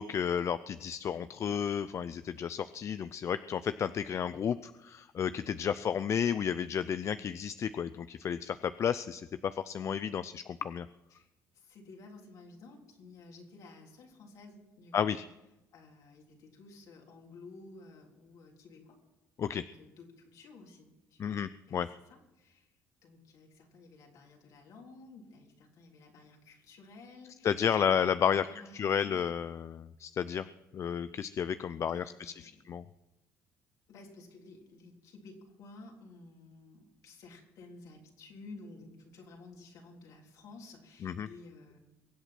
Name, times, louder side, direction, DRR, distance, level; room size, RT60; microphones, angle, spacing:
voice 1, 0.0-10.9 14.9-15.2 19.4-19.6 21.2-21.9 27.4-28.5 28.7-30.5 30.7-32.8 41.0-41.3, left 8 dB, 50° left, 13 dB, 0.5 m, -32 dB
voice 2, 11.5-15.1 15.7-19.0 19.5-21.8 22.1-22.7 23.0-29.3 30.8-31.0 31.9-32.7 33.9-41.8, left 3 dB, 70° left, 0 dB, 3.6 m, -53 dB
22.5 x 8.0 x 6.0 m, 0.98 s
supercardioid pair, 80°, 6 cm